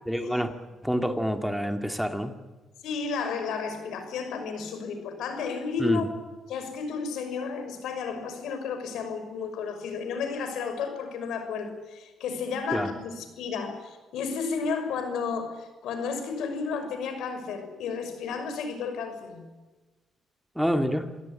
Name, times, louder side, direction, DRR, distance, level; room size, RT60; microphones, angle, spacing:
voice 1, 0.1-0.5 0.8-2.3 5.8-6.1 12.7-12.9 20.6-21.1, equal, ahead, 6 dB, 2.2 m, -27 dB
voice 2, 2.8-6.0 6.5-19.5, left 5 dB, 80° left, 8 dB, 5.9 m, -32 dB
26.5 x 17.5 x 9.9 m, 1.2 s
cardioid pair, 90°, 0 cm